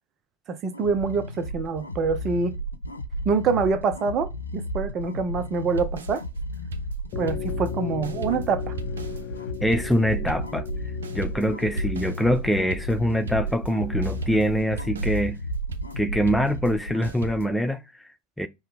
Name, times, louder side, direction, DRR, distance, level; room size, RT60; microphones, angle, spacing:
voice 1, 0.5-2.5 3.2-6.2 7.2-8.7, right 5 dB, 35° right, 0.7 m, -25 dB
sound 1, 0.7-17.1, equal, 85° left, 0.4 m, -33 dB
sound 2, 5.7-7.8 8.0-13.8 14.0-17.5, right 2 dB, 70° right, 0.5 m, -38 dB
sound 3, 7.1-14.6, left 10 dB, 45° left, 0.7 m, -38 dB
voice 2, 9.6-10.7 11.1-15.4 16.0-18.5, equal, ahead, 0.4 m, -24 dB
5.5 x 2.2 x 3.4 m
figure-of-eight pair, 80°, 0 cm